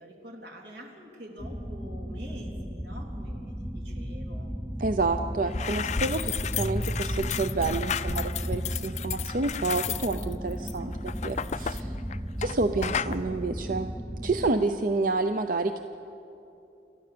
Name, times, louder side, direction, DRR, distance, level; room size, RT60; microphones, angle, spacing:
voice 1, 0.0-4.5, equal, 80° right, 0 dB, 3.5 m, -46 dB
sound 1, 1.4-14.5, equal, 5° right, 0.5 m, -35 dB
voice 2, 4.8-11.9 12.4-13.9 14.2-15.8, right 3 dB, 50° right, 8 dB, 0.6 m, -29 dB
sound 2, 5.1-5.2 5.4-12.6 12.8-13.2, left 7 dB, 40° left, 0.4 m, -33 dB
27.5 x 14.0 x 6.9 m, 2.8 s
head